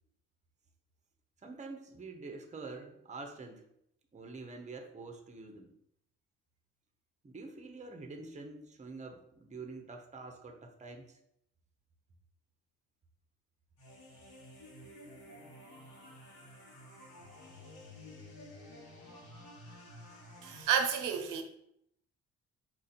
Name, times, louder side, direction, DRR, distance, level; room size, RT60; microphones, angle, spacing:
voice 1, 1.4-3.6 4.1-5.7 7.2-11.2, right 3 dB, 25° right, 5 dB, 0.7 m, -46 dB
sound 1, 13.8-20.6, left 1 dB, 85° left, 1.8 m, -52 dB
voice 2, 20.4-21.4, right 7 dB, 80° right, 6 dB, 0.7 m, -30 dB
4.4 x 2.6 x 4.3 m, 0.75 s
cardioid pair, 90°, 30 cm